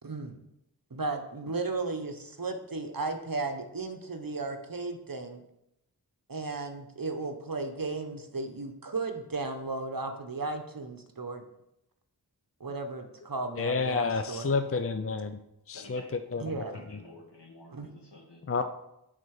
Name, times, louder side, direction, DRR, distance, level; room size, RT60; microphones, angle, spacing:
voice 1, 0.0-0.4 0.9-5.4 6.3-11.4 12.6-14.5 16.4-16.8 17.7-17.9, right 3 dB, 55° right, 6 dB, 1.0 m, -35 dB
voice 2, 13.6-15.4 15.7-16.0 16.3-16.6 18.5-18.6, left 4 dB, 35° left, 8 dB, 0.5 m, -29 dB
voice 3, 14.4-14.8 15.7-16.4 16.7-18.6, left 1 dB, 80° left, -2 dB, 2.1 m, -51 dB
9.3 x 4.0 x 4.8 m, 0.83 s
wide cardioid pair, 40°, 40 cm